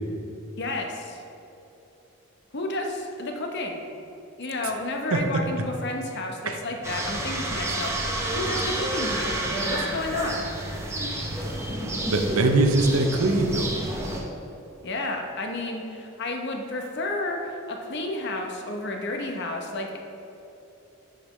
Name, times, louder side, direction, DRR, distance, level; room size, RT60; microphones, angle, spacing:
voice 1, 0.6-1.2 2.5-3.8 4.4-9.3 9.7-10.4 14.8-20.0, left 2 dB, 55° left, 2 dB, 0.8 m, -31 dB
sound 1, 6.8-14.2, right 1 dB, 15° right, 0.7 m, -29 dB
voice 2, 12.1-13.7, right 2 dB, 85° right, 5 dB, 0.7 m, -22 dB
10.0 x 5.1 x 3.2 m, 2.8 s
head